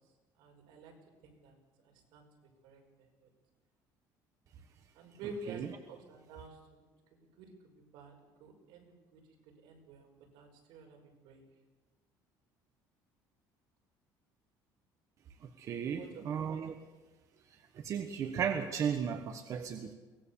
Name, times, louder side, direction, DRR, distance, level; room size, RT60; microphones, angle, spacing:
voice 1, 0.4-0.9 1.2-1.5 2.1-2.3 2.6-3.3 5.0-6.8 7.4-8.1 8.4-9.2 9.6-10.1 10.3-11.5 15.8-16.8, right 3 dB, 80° right, 2 dB, 5.5 m, -50 dB
voice 2, 15.4-16.7 17.7-19.9, right 7 dB, 40° right, 6 dB, 1.4 m, -35 dB
23.0 x 19.0 x 7.2 m, 1.2 s
cardioid pair, 160°, 8 cm